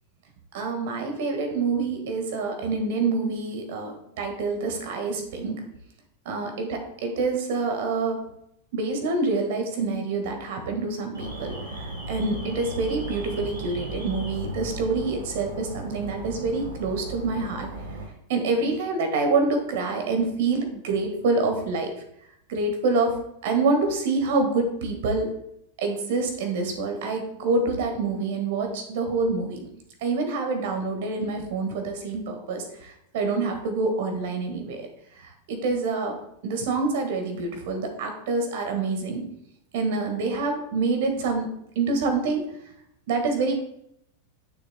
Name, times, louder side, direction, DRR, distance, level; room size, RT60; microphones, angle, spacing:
voice 1, 0.5-5.6 6.2-8.2 8.7-17.7 18.3-21.9 22.5-25.3 25.8-29.7 30.0-34.9 35.2-39.2 39.7-41.5 41.7-42.4 43.1-43.6, right 3 dB, 50° right, 4 dB, 1.7 m, -26 dB
Alarm, 11.1-18.1, right 2 dB, 70° right, 2.1 m, -36 dB
11.0 x 6.6 x 2.3 m, 0.74 s
figure-of-eight pair, 90°, 0 cm